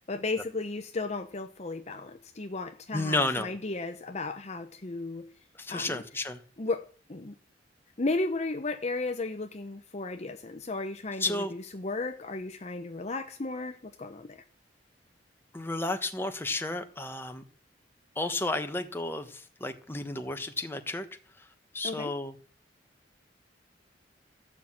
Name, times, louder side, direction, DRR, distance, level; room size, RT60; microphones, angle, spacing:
voice 1, 0.1-5.3 5.7-6.0 6.6-7.3 8.0-14.4 21.8-22.1, left 3 dB, 35° left, 6 dB, 0.8 m, -34 dB
voice 2, 2.9-3.5 5.5-6.4 11.2-11.5 15.5-17.4 18.1-21.1 21.4-21.5 21.7-22.4, left 2 dB, 10° left, 6 dB, 1.3 m, -32 dB
14.5 x 6.0 x 8.9 m, 0.43 s
head